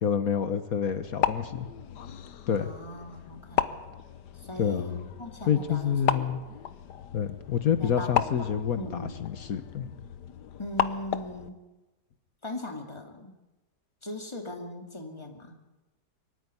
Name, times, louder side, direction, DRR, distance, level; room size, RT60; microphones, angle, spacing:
voice 1, 0.0-1.7 2.5-2.7 4.6-5.1 5.5-6.4 7.1-8.9 9.2-9.9, left 8 dB, 60° left, 11 dB, 1.5 m, -28 dB
sound 1, 0.9-11.5, left 9 dB, 90° left, 1.6 m, -34 dB
voice 2, 2.5-3.8 4.3-6.4 7.8-9.2 10.6-11.6 12.4-13.4 14.0-15.6, left 1 dB, 15° left, 3 dB, 2.7 m, -39 dB
24.0 x 13.5 x 9.8 m, 1.1 s
omnidirectional pair, 1.8 m